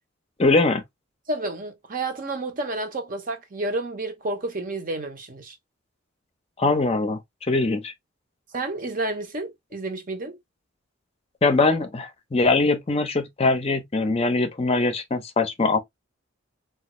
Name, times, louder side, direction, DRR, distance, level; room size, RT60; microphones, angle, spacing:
voice 1, 0.4-0.8 6.6-7.9 11.4-15.8, left 3 dB, 30° left, 0.5 m, -22 dB
voice 2, 1.3-5.6 8.5-10.4, right 2 dB, 45° right, 0.7 m, -30 dB
3.3 x 2.3 x 2.9 m
head